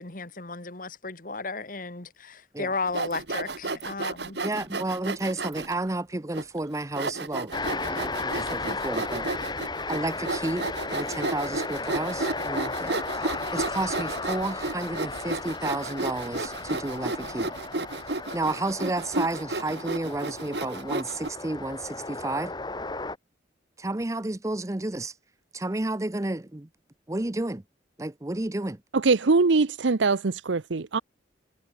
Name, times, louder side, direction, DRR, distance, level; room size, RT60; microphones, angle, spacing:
voice 1, 0.0-4.4, left 3 dB, 45° left, 2.0 m, -34 dB
Sawing, 2.9-5.7 6.3-6.4 7.0-21.3, right 2 dB, 60° right, 1.8 m, -32 dB
voice 2, 4.4-7.5 7.9-9.3 9.9-17.5 18.3-22.5 23.8-25.1 25.5-26.7 27.1-27.6 28.0-28.8, right 2 dB, 15° right, 0.6 m, -31 dB
sound 1, 7.5-23.2, left 3 dB, 25° left, 2.0 m, -35 dB
voice 3, 28.9-31.0, right 4 dB, 75° right, 0.7 m, -22 dB
head